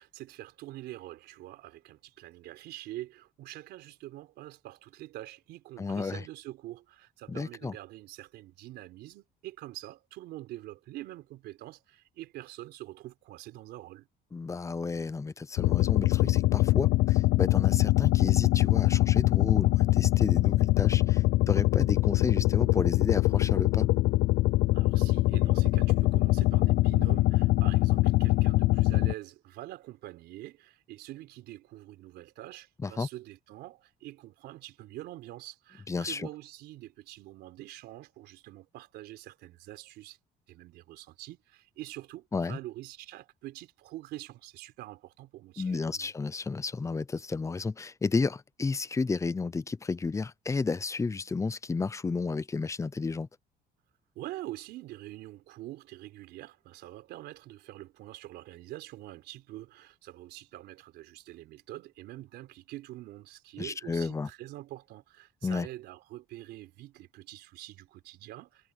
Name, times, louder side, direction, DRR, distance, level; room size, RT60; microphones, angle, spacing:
voice 1, 0.0-14.1 24.7-40.2 40.5-46.1 54.2-68.7, right 16 dB, 85° right, 4.0 m, -45 dB
voice 2, 5.8-6.2 7.3-7.7 14.3-23.9 32.8-33.1 35.9-36.3 42.3-42.6 45.6-53.3 63.6-64.3 65.4-65.7, left 4 dB, 15° left, 0.7 m, -32 dB
Generated Helicopter, 15.6-29.1, left 18 dB, 80° left, 0.6 m, -23 dB
cardioid pair, 110°, 17 cm